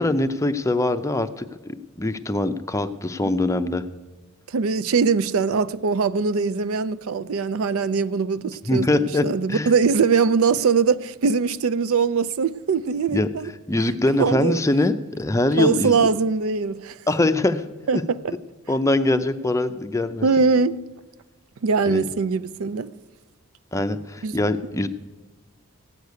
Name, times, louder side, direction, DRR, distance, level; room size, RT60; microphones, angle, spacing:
voice 1, 0.0-1.5 2.0-3.8 8.7-9.7 13.1-13.3 13.7-16.0 17.1-17.6 17.9-18.0 18.7-20.3 21.9-22.0 23.7-24.9, left 2 dB, 15° left, 0.5 m, -22 dB
voice 2, 4.5-13.5 14.2-14.6 15.6-17.0 17.9-18.3 20.2-20.8 21.6-22.9 24.2-24.4, right 5 dB, 70° right, 0.4 m, -22 dB
15.5 x 6.6 x 9.4 m
head